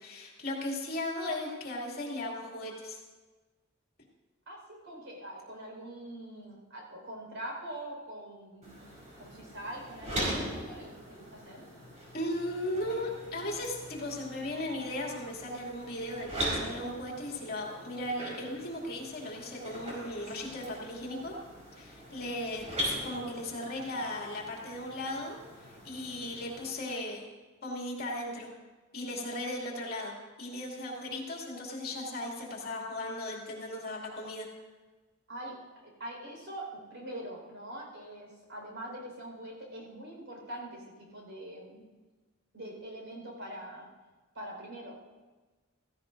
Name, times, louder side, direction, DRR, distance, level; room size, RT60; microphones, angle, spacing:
voice 1, 0.0-3.0 12.1-21.3 21.7-27.2 27.6-28.5 28.9-34.5, left 1 dB, 50° left, -2 dB, 2.6 m, -37 dB
voice 2, 4.5-8.8 9.2-11.7 35.3-35.6 35.8-41.9 42.5-43.9 44.3-45.0, right 1 dB, 65° right, -1 dB, 4.9 m, -43 dB
sound 1, 8.6-26.7, equal, 35° right, 4.5 m, -41 dB
16.0 x 15.5 x 2.7 m, 1.3 s
head